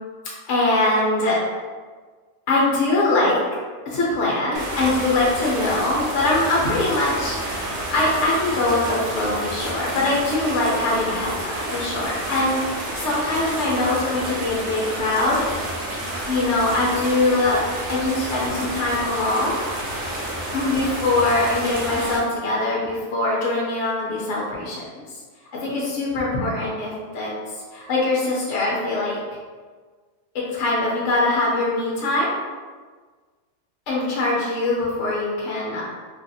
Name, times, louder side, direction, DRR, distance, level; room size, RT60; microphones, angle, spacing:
voice 1, 0.5-1.4 2.5-3.4 3.8-15.4 16.3-17.6 17.9-19.6 20.5-24.8 25.6-27.3 27.7-29.2 30.5-32.3 33.9-35.8, left 2 dB, 60° left, -5 dB, 0.8 m, -22 dB
sound 1, 4.5-22.2, right 1 dB, 85° right, 1.3 m, -30 dB
3.2 x 2.5 x 2.6 m, 1.5 s
omnidirectional pair, 1.8 m